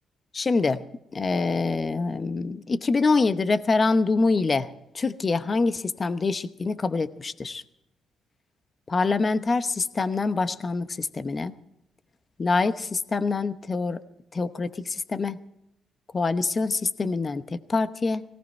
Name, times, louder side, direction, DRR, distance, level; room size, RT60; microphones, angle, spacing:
voice 1, 0.3-0.8 1.1-4.7 4.9-7.6 8.9-11.5 12.4-14.0 14.3-15.4 16.1-18.2, left 3 dB, 35° left, 12 dB, 1.0 m, -25 dB
18.5 x 17.5 x 4.5 m, 0.80 s
cardioid pair, 90°, 0 cm